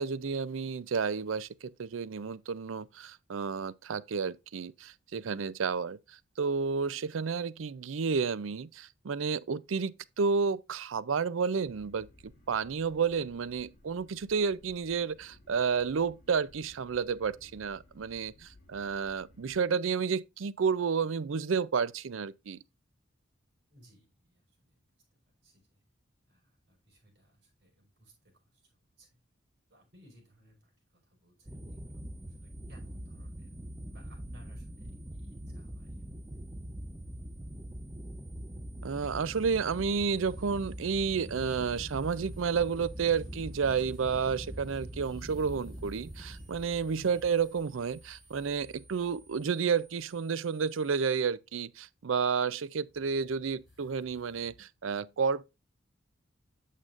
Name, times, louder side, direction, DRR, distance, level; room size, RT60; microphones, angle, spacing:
voice 1, 0.0-6.0 6.4-12.1 12.5-22.6 38.8-55.5, right 5 dB, 85° right, 0.5 m, -31 dB
sound 1, 11.6-19.6, left 1 dB, 45° left, 2.8 m, -59 dB
voice 2, 23.7-25.8 26.3-29.2 29.7-33.6 33.9-36.4 46.9-47.3, equal, 55° right, 5.0 m, -61 dB
sound 2, 31.5-51.2, right 1 dB, 15° right, 0.6 m, -44 dB
sound 3, 39.0-49.8 52.8-54.6, equal, ahead, 4.9 m, -57 dB
8.3 x 7.3 x 2.5 m
head